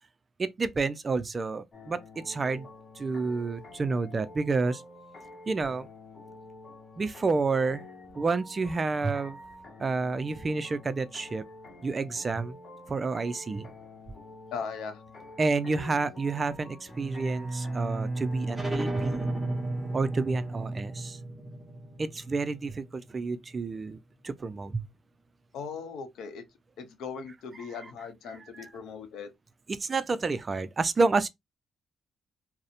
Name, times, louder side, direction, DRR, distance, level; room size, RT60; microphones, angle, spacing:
voice 1, 0.4-2.7 3.0-4.8 5.5-5.9 7.0-7.8 8.2-9.4 9.8-11.4 11.8-12.6 12.9-13.7 15.4-19.3 19.9-21.2 22.0-24.0 24.2-24.9 27.5-27.9 28.3-28.7 29.7-31.3, right 4 dB, 30° right, 0.3 m, -29 dB
sound 1, 1.7-18.6, left 2 dB, 45° left, 0.9 m, -48 dB
voice 2, 14.5-15.0 25.5-26.4 26.8-29.3, left 6 dB, 80° left, 0.6 m, -39 dB
Bowed string instrument, 16.9-21.6, right 2 dB, 20° left, 1.3 m, -34 dB
sound 2, 18.5-23.8, right 1 dB, 5° right, 0.7 m, -39 dB
2.7 x 2.0 x 2.4 m
cardioid pair, 90°, 0 cm